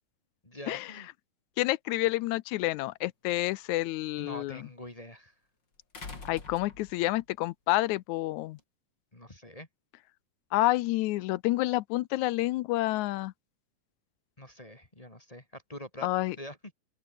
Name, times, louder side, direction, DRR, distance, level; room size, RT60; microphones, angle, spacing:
voice 1, 0.4-1.1 4.2-5.3 9.1-9.7 14.4-16.1 16.4-16.6, equal, 15° left, 1.9 m, -45 dB
voice 2, 1.6-4.6 6.3-8.6 10.5-13.3 16.0-16.4, left 18 dB, 80° left, 1.9 m, -29 dB
sound 1, 2.7-2.8 5.9-7.2 8.6-8.7, left 4 dB, 35° left, 4.4 m, -44 dB
open air
omnidirectional pair, 3.6 m